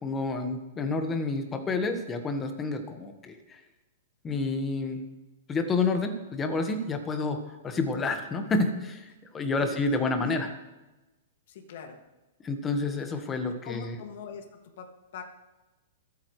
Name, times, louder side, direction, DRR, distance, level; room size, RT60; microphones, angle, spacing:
voice 1, 0.0-3.6 4.2-5.0 5.5-10.5 12.4-13.9, left 3 dB, 15° left, 6 dB, 1.5 m, -29 dB
voice 2, 11.5-12.0 13.6-14.4 14.8-15.2, left 7 dB, 60° left, 3 dB, 2.1 m, -41 dB
25.5 x 9.0 x 3.3 m, 1.1 s
hypercardioid pair, 150°, 0 cm